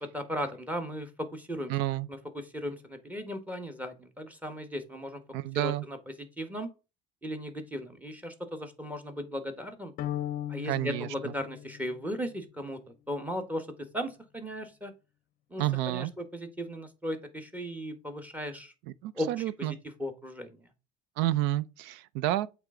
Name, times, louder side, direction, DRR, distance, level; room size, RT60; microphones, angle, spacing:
voice 1, 0.1-1.7 2.1-5.2 5.5-6.7 7.2-9.9 10.5-12.8 13.1-14.9 15.5-18.7 19.2-20.6, equal, 10° right, 1.4 m, -37 dB
voice 2, 1.7-2.1 5.3-5.8 10.6-11.3 15.6-16.1 19.0-19.8 21.2-22.5, right 14 dB, 70° right, 0.5 m, -30 dB
sound 1, 10.0-12.3, left 12 dB, 50° left, 0.6 m, -37 dB
8.0 x 3.5 x 3.8 m
supercardioid pair, 105°, 19 cm